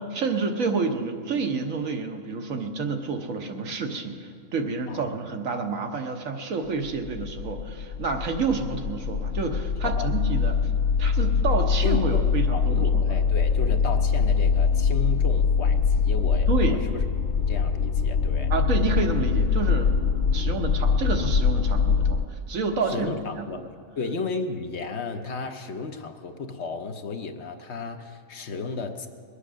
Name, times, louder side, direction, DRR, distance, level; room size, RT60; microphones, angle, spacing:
voice 1, 0.1-10.6 11.0-12.9 16.5-16.8 18.5-19.9 20.3-23.7, right 4 dB, 75° right, 4 dB, 1.4 m, -29 dB
sound 1, 6.9-22.2, left 6 dB, 75° left, 0.4 m, -23 dB
voice 2, 11.8-17.0 17.4-18.5 20.3-20.7 22.9-23.6 24.0-29.1, left 4 dB, 55° left, 6 dB, 1.0 m, -34 dB
21.5 x 8.3 x 6.3 m, 2.4 s
omnidirectional pair, 1.4 m